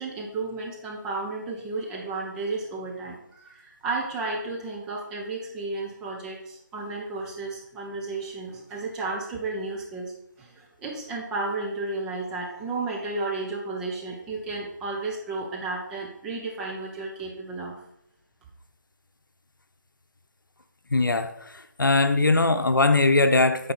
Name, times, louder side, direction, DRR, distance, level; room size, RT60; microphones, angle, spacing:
voice 1, 0.0-10.1 10.4-17.8, right 3 dB, 5° right, -2 dB, 0.5 m, -33 dB
voice 2, 20.9-21.5 21.8-23.7, left 3 dB, 85° left, 9 dB, 0.7 m, -20 dB
8.8 x 4.1 x 4.0 m, 0.78 s
figure-of-eight pair, 160°, 11 cm